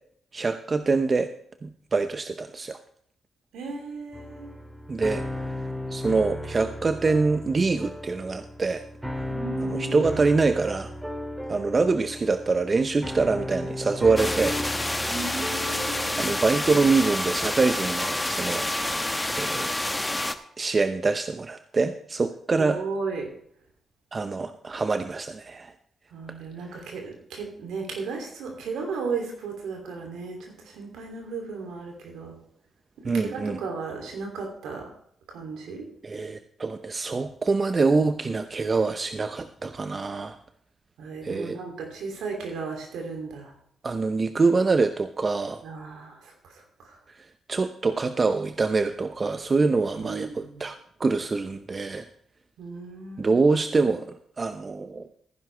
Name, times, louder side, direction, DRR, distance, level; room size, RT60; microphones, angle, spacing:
voice 1, 0.3-1.3 1.6-2.8 4.9-5.2 5.9-8.8 9.6-10.9 11.5-14.9 16.2-19.7 20.6-22.8 24.1-25.7 26.7-26.8 33.0-33.6 36.0-40.4 41.2-41.6 43.8-45.6 47.5-50.7 51.0-52.1 53.2-54.1 54.4-55.1, right 4 dB, 40° right, 9 dB, 0.7 m, -25 dB
voice 2, 3.5-4.5 9.3-10.2 15.1-16.4 22.6-23.3 26.1-32.4 33.0-34.9 35.3-35.9 41.0-43.5 45.6-46.5 46.8-47.0 50.0-50.6 52.6-53.5, right 4 dB, 80° right, 2 dB, 2.9 m, -35 dB
sound 1, 4.1-20.4, left 1 dB, 10° right, 2.7 m, -36 dB
sound 2, 14.2-20.3, left 1 dB, 15° left, 1.1 m, -28 dB
14.5 x 10.5 x 3.4 m, 0.66 s
hypercardioid pair, 45°, 0 cm